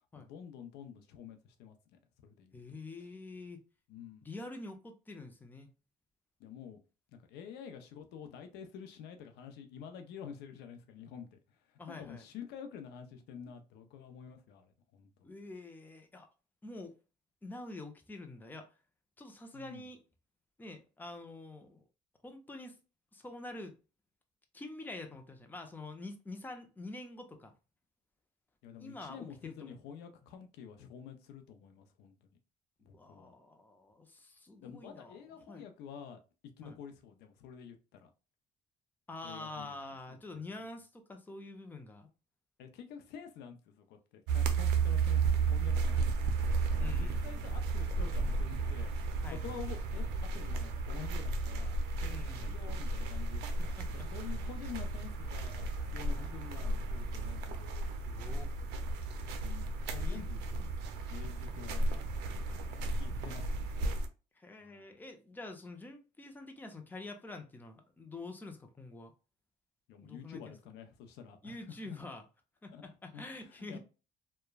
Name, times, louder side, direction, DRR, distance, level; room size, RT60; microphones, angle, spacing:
voice 1, 0.1-1.8 2.2-2.6 3.9-4.3 6.4-6.8 7.1-11.4 11.9-15.1 19.5-19.8 28.6-32.1 32.8-33.3 34.6-36.2 36.6-38.1 39.2-39.7 40.3-40.4 42.6-46.1 46.7-51.8 52.4-57.9 59.4-60.4 60.9-63.8 64.6-64.9 69.9-71.6 71.9-72.0 72.7-72.8 73.1-73.3 73.7-73.8, left 8 dB, 85° left, 0.6 m, -49 dB
voice 2, 2.5-3.6 4.2-5.7 11.8-12.3 15.2-16.3 16.6-16.9 17.4-18.8 19.2-20.0 20.6-21.8 22.2-22.8 23.1-23.8 24.5-27.5 28.8-29.8 32.8-35.6 36.6-36.8 39.1-42.1 46.8-47.4 49.2-49.6 52.0-52.6 53.6-54.1 54.4-54.5 56.1-56.4 58.0-58.5 60.0-60.2 60.5-60.8 64.3-69.1 70.0-70.5 71.4-72.3 72.6-73.8, left 2 dB, 10° left, 0.5 m, -47 dB
sound 1, 44.3-64.1, right 3 dB, 90° right, 0.5 m, -33 dB
3.0 x 2.2 x 2.2 m
cardioid pair, 110°, 17 cm